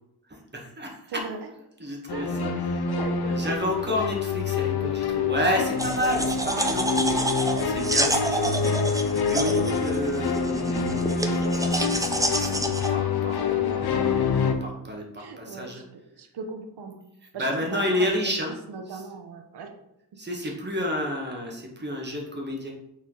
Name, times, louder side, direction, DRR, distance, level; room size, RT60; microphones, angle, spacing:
voice 1, 0.3-1.2 1.8-2.9 3.3-13.8 14.4-15.8 17.3-18.5 18.9-19.1 20.2-22.7, equal, 25° right, 0 dB, 1.9 m, -31 dB
sound 1, 2.1-14.5, left 5 dB, 70° left, 0.9 m, -26 dB
voice 2, 2.9-3.5 14.2-14.5 15.2-15.8 16.2-17.0 17.3-17.4 17.7-18.3 18.7-19.7, right 4 dB, 75° right, 5 dB, 1.1 m, -38 dB
sound 2, 5.8-12.9, right 1 dB, 10° right, 0.7 m, -28 dB
6.5 x 4.2 x 4.0 m, 0.85 s
cardioid pair, 75°, 40 cm